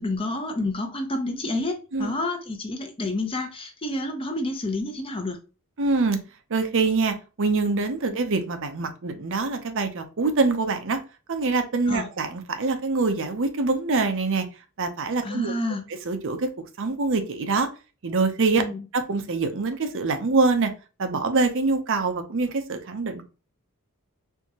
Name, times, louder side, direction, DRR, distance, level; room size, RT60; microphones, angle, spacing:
voice 1, 0.0-5.4 8.1-8.2 11.9-12.1 15.2-15.8 18.6-18.8, left 2 dB, 25° left, 5 dB, 0.7 m, -29 dB
voice 2, 5.8-6.2 6.5-11.0 11.3-14.5 14.8-15.5 16.1-17.7 18.0-18.6 18.9-20.7 21.0-23.2, right 3 dB, 60° right, 7 dB, 0.7 m, -24 dB
4.6 x 3.4 x 2.8 m, 0.33 s
head